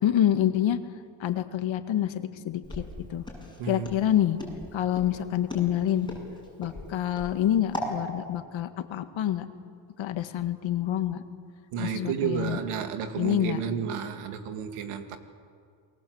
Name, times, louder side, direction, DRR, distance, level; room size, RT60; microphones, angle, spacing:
voice 1, 0.0-0.8 1.2-2.8 3.1-3.2 3.7-4.4 4.7-6.1 6.6-9.5 10.0-11.2 11.8-12.6 13.2-13.6, left 11 dB, 65° left, 8 dB, 1.9 m, -27 dB
Walk footsteps, 2.6-8.0, left 1 dB, 10° left, 7.8 m, -38 dB
voice 2, 11.7-15.2, right 7 dB, 80° right, 7 dB, 2.3 m, -31 dB
28.0 x 21.5 x 8.0 m, 2.3 s
cardioid pair, 90°, 50 cm